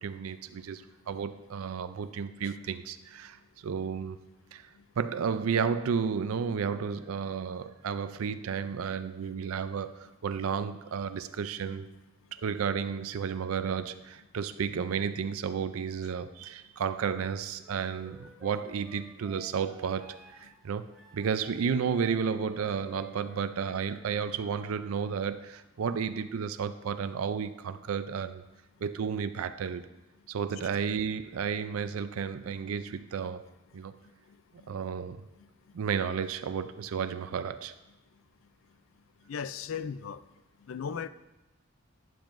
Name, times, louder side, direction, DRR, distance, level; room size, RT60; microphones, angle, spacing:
voice 1, 0.0-4.2 4.5-4.7 5.0-11.9 12.4-28.4 28.8-29.9 30.3-33.5 33.7-33.9 34.7-35.2 35.7-37.7, right 6 dB, 85° right, 0.4 m, -32 dB
Wind instrument woodwind instrument, 17.6-24.1, right 2 dB, ahead, 1.1 m, -54 dB
voice 2, 39.3-40.2 40.7-41.1, left 7 dB, 70° left, 0.4 m, -36 dB
12.0 x 9.3 x 2.6 m
head